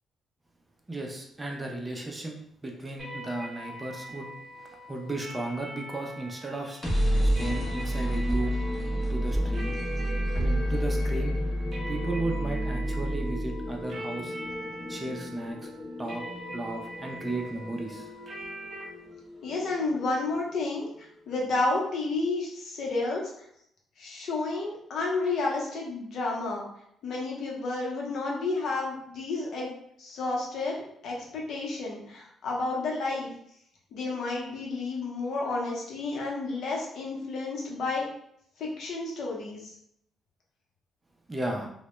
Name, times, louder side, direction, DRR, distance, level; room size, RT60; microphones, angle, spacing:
voice 1, 0.9-4.3 4.6-6.8 7.2-8.6 9.1-9.8 10.3-11.3 11.9-14.3 14.9-15.7 16.0-16.2 16.5-18.1 41.3-41.7, right 2 dB, 20° right, 1 dB, 0.4 m, -35 dB
sound 1, 3.0-18.8, right 1 dB, 50° right, 0.8 m, -43 dB
sound 2, 6.5-20.4, equal, 20° left, 0.7 m, -30 dB
voice 2, 19.4-23.2 24.0-26.7 27.0-29.7 30.0-30.8 31.0-33.3 33.9-38.0 38.6-39.7, left 3 dB, 70° left, -2 dB, 0.7 m, -31 dB
2.1 x 2.1 x 2.9 m, 0.70 s
cardioid pair, 90°, 0 cm